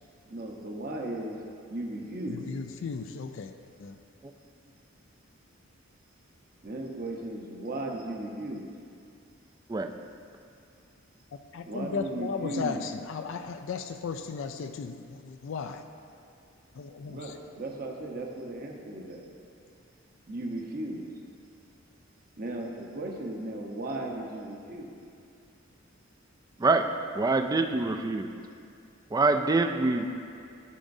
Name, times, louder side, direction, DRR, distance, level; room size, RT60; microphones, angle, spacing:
voice 1, 0.3-1.4 1.7-2.5 6.6-8.7 11.7-12.8 17.1-19.3 20.3-21.1 22.4-25.0, right 1 dB, 45° right, 0 dB, 0.9 m, -36 dB
voice 2, 2.3-3.5 3.8-4.0 11.5-15.8 16.7-17.3, left 5 dB, 65° left, 7 dB, 0.4 m, -35 dB
voice 3, 27.2-28.3 29.1-30.0, right 3 dB, 20° right, 6 dB, 0.3 m, -25 dB
13.5 x 5.0 x 2.7 m, 2.4 s
head